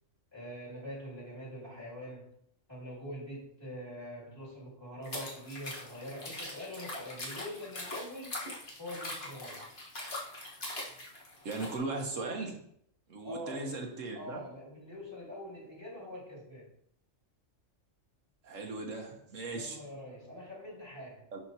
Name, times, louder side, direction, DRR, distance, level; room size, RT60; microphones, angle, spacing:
voice 1, 0.3-2.4 2.7-8.3 8.8-9.8 13.2-13.9 14.1-16.7 19.5-21.3, equal, 20° left, -7 dB, 2.7 m, -44 dB
sound 1, 5.0-11.8, left 2 dB, 45° left, 1.7 m, -42 dB
voice 2, 11.4-12.6 13.1-14.4 18.4-19.8 21.3-21.4, right 3 dB, 80° right, 2 dB, 1.5 m, -37 dB
10.5 x 4.5 x 2.9 m, 0.68 s
omnidirectional pair, 1.3 m